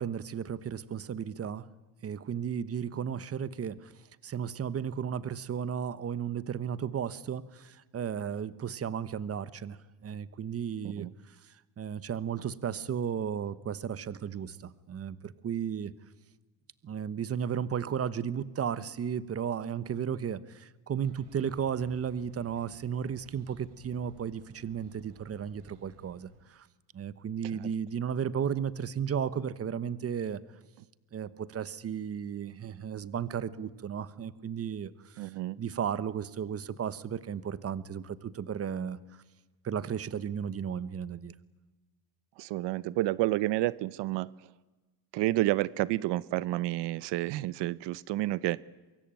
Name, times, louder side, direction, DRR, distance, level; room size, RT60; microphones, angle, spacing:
voice 1, 0.0-1.7 2.0-3.9 4.2-11.3 11.8-15.9 16.8-26.7 26.9-30.4 31.1-35.3 35.6-39.0 39.6-41.3, right 8 dB, 35° right, 17 dB, 1.2 m, -34 dB
sound 1, 21.0-26.5, right 5 dB, 70° right, 4.5 m, -57 dB
voice 2, 35.2-35.6 42.4-44.3 45.1-48.6, right 17 dB, 85° right, 20 dB, 0.8 m, -30 dB
24.0 x 23.0 x 9.1 m, 1.2 s
cardioid pair, 130°, 41 cm